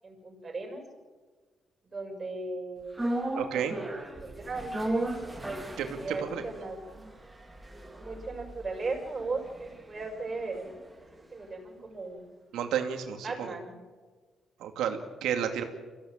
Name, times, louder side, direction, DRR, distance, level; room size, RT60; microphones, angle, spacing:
voice 1, 0.0-0.8 1.8-3.0 3.5-3.9 4.2-5.1 6.0-7.1 8.0-10.7 11.3-12.3 13.2-13.8, right 3 dB, 30° right, 1 dB, 7.1 m, -37 dB
sound 1, 3.0-11.3 11.5-11.6, right 1 dB, 15° right, 3.3 m, -37 dB
voice 2, 3.4-3.7 5.8-6.4 12.5-13.5 14.6-15.6, right 8 dB, 85° right, 5 dB, 2.5 m, -31 dB
25.0 x 16.0 x 9.1 m, 1.4 s
cardioid pair, 90°, 0 cm